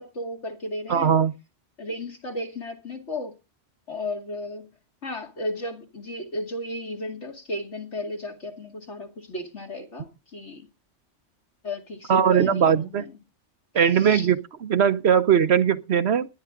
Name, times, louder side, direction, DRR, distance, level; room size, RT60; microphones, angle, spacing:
voice 1, 0.0-1.1 1.8-3.3 3.9-4.7 5.0-10.7 11.6-13.2 13.8-14.3, left 1 dB, 65° left, 2.7 m, -34 dB
voice 2, 0.9-1.3 12.1-13.0 13.7-16.3, right 8 dB, 60° right, 1.1 m, -20 dB
19.5 x 10.5 x 3.8 m
omnidirectional pair, 1.3 m